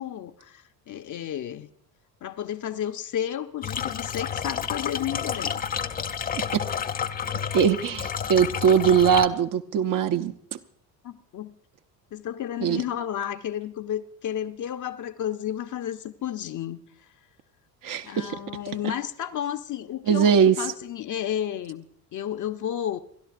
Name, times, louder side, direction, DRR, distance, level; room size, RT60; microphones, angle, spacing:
voice 1, 0.0-1.7 2.2-5.7 11.0-11.5 12.1-16.8 18.0-21.9 22.1-23.0, left 10 dB, 40° left, 0.8 m, -32 dB
sound 1, 3.6-9.3, left 7 dB, 20° left, 0.5 m, -30 dB
voice 2, 7.5-10.3 12.6-12.8 17.8-18.3 20.1-20.6, right 7 dB, 40° right, 0.8 m, -21 dB
28.5 x 12.5 x 2.6 m
hypercardioid pair, 60°, 49 cm